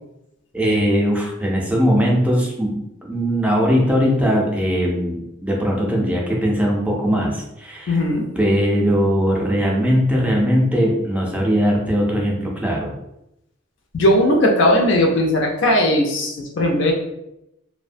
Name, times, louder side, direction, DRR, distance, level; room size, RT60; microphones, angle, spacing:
voice 1, 0.5-8.0 8.4-13.0, equal, 5° right, -2 dB, 0.4 m, -20 dB
voice 2, 7.9-8.3 13.9-16.9, left 1 dB, 65° left, 1 dB, 0.5 m, -17 dB
2.7 x 2.1 x 2.5 m, 0.85 s
head